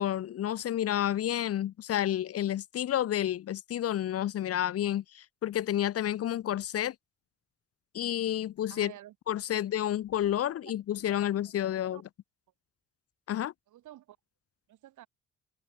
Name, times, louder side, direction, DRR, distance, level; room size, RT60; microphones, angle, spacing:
voice 1, 0.0-6.9 7.9-8.9 9.3-12.0 13.3-13.5, left 11 dB, 50° left, 0.6 m, -30 dB
voice 2, 8.7-9.2 9.5-9.8 10.4-11.1 11.7-12.0 13.7-14.2 14.7-15.1, right 13 dB, 80° right, 4.0 m, -52 dB
cardioid pair, 90°, 30 cm